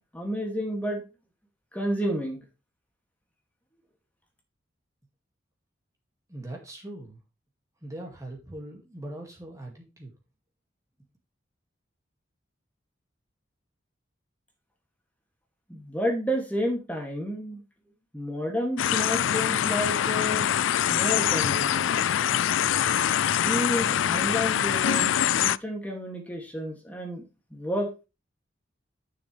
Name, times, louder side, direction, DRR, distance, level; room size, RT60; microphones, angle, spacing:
voice 1, 0.1-1.0 1.7-2.4 15.7-17.6 18.1-20.5 20.9-22.0 23.4-27.2 27.5-28.1, equal, 10° left, 0 dB, 2.3 m, -31 dB
voice 2, 6.3-7.2 7.8-10.1, right 1 dB, 15° right, 0 dB, 2.1 m, -41 dB
sound 1, 18.8-25.6, left 10 dB, 80° left, 0.4 m, -24 dB
11.0 x 6.4 x 3.3 m, 0.27 s
head